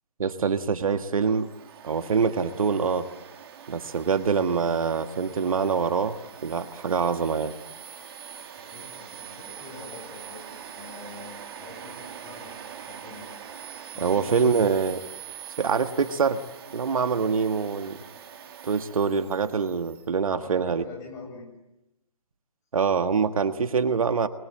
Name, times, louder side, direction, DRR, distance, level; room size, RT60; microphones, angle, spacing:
voice 1, 0.2-1.5 1.8-3.1 3.7-6.1 6.4-7.5 14.0-15.0 15.6-16.4 16.7-18.0 18.7-20.8 22.7-24.3, right 5 dB, 65° right, 9 dB, 1.6 m, -24 dB
Domestic sounds home sounds, 1.2-20.1, right 8 dB, 40° right, 2.5 m, -43 dB
voice 2, 8.5-12.6 12.8-13.4 13.9-14.6 20.3-21.5, left 4 dB, 15° left, 2 dB, 7.1 m, -45 dB
29.0 x 22.0 x 8.8 m, 0.94 s
hypercardioid pair, 150°, 19 cm